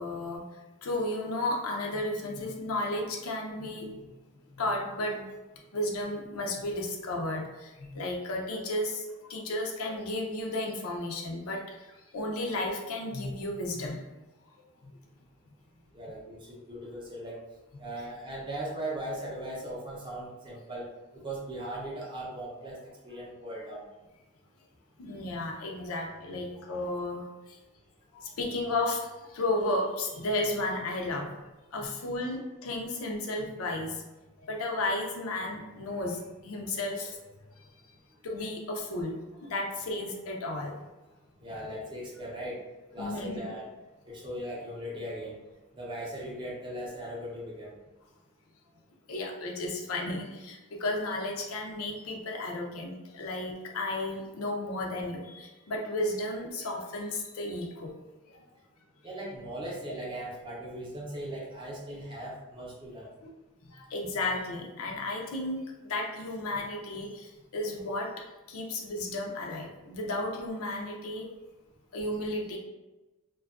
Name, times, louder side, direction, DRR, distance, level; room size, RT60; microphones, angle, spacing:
voice 1, 0.0-4.0 4.3-5.3 5.7-14.0 14.8-14.9 17.7-17.9 25.0-27.6 28.1-31.4 31.7-34.0 34.4-37.3 38.2-40.8 43.0-43.4 49.1-57.9 58.3-58.5 63.7-68.1 68.5-71.3 71.9-72.6, left 1 dB, 70° left, 0 dB, 0.5 m, -33 dB
voice 2, 15.9-17.4 17.8-23.9 41.4-42.6 42.9-43.7 44.1-45.4 45.7-47.8 59.0-63.1, right 1 dB, 20° right, -4 dB, 0.5 m, -39 dB
2.6 x 2.2 x 2.4 m, 1.1 s
head